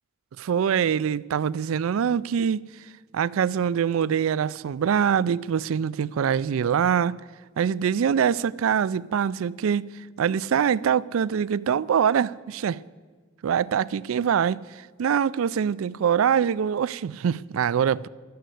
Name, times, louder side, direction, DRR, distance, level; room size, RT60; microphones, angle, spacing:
voice 1, 0.4-2.6 3.1-7.2 7.6-9.8 10.2-12.8 13.4-18.1, right 8 dB, 75° right, 0.3 m, -24 dB
12.5 x 9.4 x 7.7 m
head